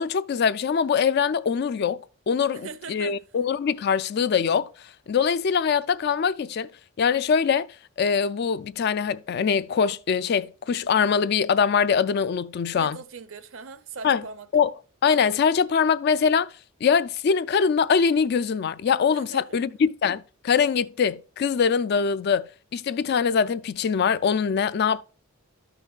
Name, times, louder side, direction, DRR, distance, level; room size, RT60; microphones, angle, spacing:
voice 1, 0.0-2.0 2.3-4.7 5.1-6.7 7.0-7.7 8.0-13.0 14.0-14.2 14.5-14.7 15.0-16.5 16.8-25.0, left 6 dB, 50° left, 0.3 m, -23 dB
voice 2, 2.5-3.2 12.7-14.5 19.1-19.6, right 4 dB, 65° right, 0.6 m, -40 dB
12.5 x 6.0 x 2.4 m
head